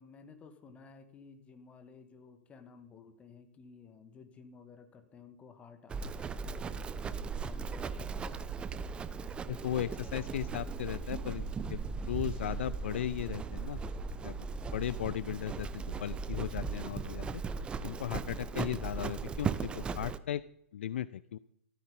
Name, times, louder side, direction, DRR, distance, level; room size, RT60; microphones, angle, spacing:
voice 1, 0.0-8.1 18.5-18.7, left 5 dB, 15° left, 8 dB, 2.0 m, -55 dB
Livestock farm animals working animals, 5.9-20.2, right 5 dB, 10° right, 0.7 m, -38 dB
voice 2, 9.5-11.8 12.1-13.8 14.2-14.4 14.7-17.4 17.8-20.4 20.7-21.4, left 11 dB, 55° left, 19 dB, 0.5 m, -36 dB
16.0 x 14.0 x 5.3 m, 0.76 s
figure-of-eight pair, 115°, 8 cm